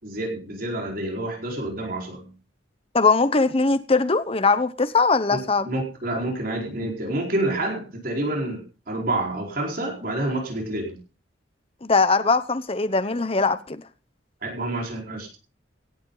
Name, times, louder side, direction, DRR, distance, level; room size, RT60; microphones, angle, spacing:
voice 1, 0.0-2.3 5.3-5.4 5.7-11.0 14.4-15.4, right 1 dB, 50° right, 4.7 m, -28 dB
voice 2, 2.9-5.7 11.8-13.8, left 4 dB, 30° left, 0.9 m, -21 dB
18.0 x 10.0 x 4.0 m
head